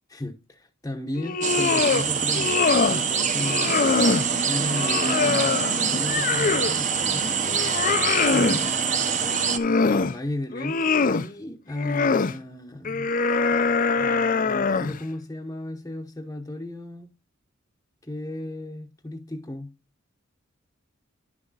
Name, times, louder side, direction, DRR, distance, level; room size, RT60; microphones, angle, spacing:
voice 1, 0.1-3.9 4.4-7.3 8.3-13.1 13.9-17.1 18.0-19.7, left 1 dB, 15° left, 0.9 m, -35 dB
sound 1, 1.2-2.1 2.3-3.0 3.4-4.3 4.7-6.8 7.2-8.6 9.3-10.2 10.5-11.3 11.8-12.3 12.9-15.0, left 4 dB, 40° left, 0.5 m, -23 dB
sound 2, 1.4-9.6, right 6 dB, 35° right, 1.0 m, -25 dB
10.5 x 6.1 x 4.0 m
head